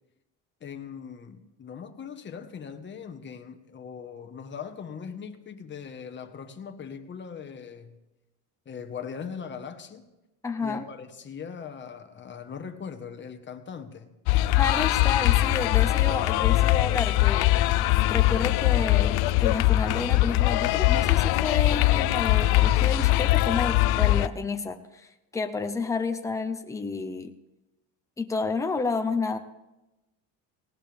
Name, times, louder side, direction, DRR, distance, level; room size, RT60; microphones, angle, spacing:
voice 1, 0.6-8.0 8.6-10.1 10.6-14.1, left 6 dB, 30° left, 7 dB, 1.3 m, -40 dB
voice 2, 10.4-10.8 14.5-27.3 28.2-29.4, left 4 dB, 10° left, 6 dB, 0.8 m, -31 dB
sound 1, 14.3-24.3, left 16 dB, 70° left, 0.7 m, -22 dB
19.0 x 17.5 x 3.5 m, 1.0 s
cardioid pair, 130°, 40 cm